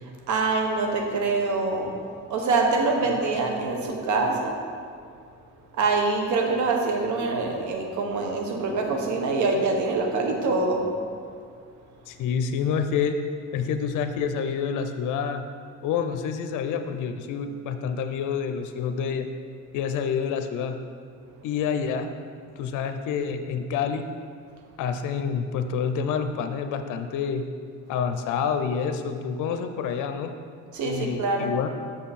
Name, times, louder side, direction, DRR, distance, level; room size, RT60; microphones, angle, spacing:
voice 1, 0.3-2.0 2.3-4.6 5.7-10.9 30.7-31.5, right 3 dB, 75° right, 2 dB, 1.0 m, -25 dB
voice 2, 12.1-13.2 13.5-15.4 15.8-19.3 19.7-20.8 21.4-22.1 22.6-24.1 24.8-27.4 27.9-30.3 30.8-31.7, left 6 dB, 85° left, 7 dB, 0.6 m, -28 dB
6.5 x 5.7 x 4.2 m, 2.2 s
cardioid pair, 90°, 30 cm